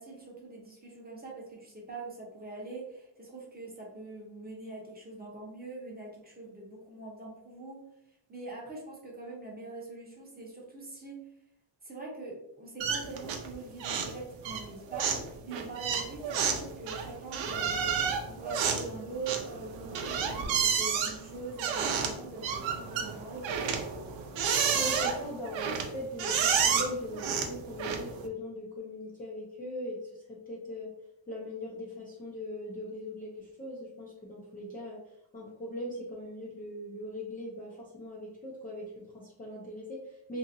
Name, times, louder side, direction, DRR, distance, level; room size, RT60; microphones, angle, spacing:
voice 1, 0.0-7.8 8.3-11.2 11.8-15.1 15.4-17.9 18.2-23.6, right 3 dB, 20° right, -3 dB, 0.7 m, -43 dB
sound 1, 12.8-13.5 13.8-14.2 14.4-28.3, right 6 dB, 70° right, 0.6 m, -30 dB
voice 2, 24.7-30.9 31.3-35.0 35.3-40.4, left 1 dB, 20° left, -5 dB, 0.4 m, -40 dB
2.8 x 2.6 x 2.5 m, 0.82 s
cardioid pair, 145°, 47 cm